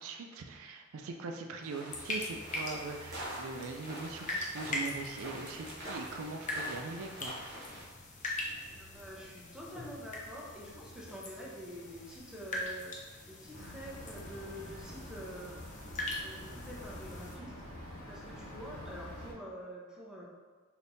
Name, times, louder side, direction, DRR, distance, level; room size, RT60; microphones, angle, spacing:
voice 1, 0.0-7.3, right 3 dB, 85° right, 4 dB, 0.4 m, -41 dB
sound 1, 1.6-7.8, right 1 dB, 55° right, 0.9 m, -45 dB
sound 2, 1.9-17.4, left 2 dB, 40° left, 0.6 m, -42 dB
voice 2, 8.7-15.6 16.2-17.5 17.8-20.3, equal, 5° right, -5 dB, 0.6 m, -47 dB
sound 3, 13.5-19.3, left 1 dB, 80° left, 0.7 m, -46 dB
3.4 x 2.8 x 2.6 m, 1.5 s
head